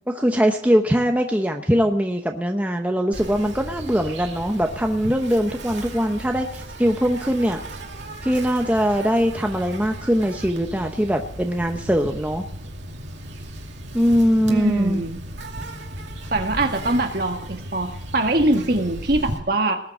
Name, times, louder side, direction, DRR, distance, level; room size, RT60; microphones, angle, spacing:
voice 1, 0.1-7.6 8.2-12.4 13.9-15.0, equal, 10° right, 3 dB, 0.8 m, -21 dB
Insect, 3.1-19.4, right 1 dB, 70° right, 2.5 m, -36 dB
voice 2, 14.5-15.2 16.3-19.8, right 2 dB, 50° right, 4 dB, 1.8 m, -22 dB
19.5 x 6.8 x 7.8 m, 0.72 s
head